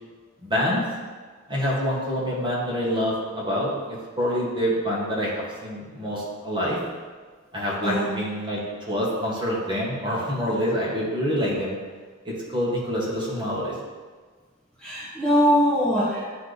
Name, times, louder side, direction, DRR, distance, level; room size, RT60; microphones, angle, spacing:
voice 1, 0.4-0.8 1.5-6.8 7.5-11.7 12.2-13.7, equal, 25° right, -6 dB, 1.6 m, -26 dB
voice 2, 14.8-16.2, equal, 5° left, -9 dB, 1.3 m, -21 dB
9.9 x 3.3 x 4.0 m, 1.5 s
head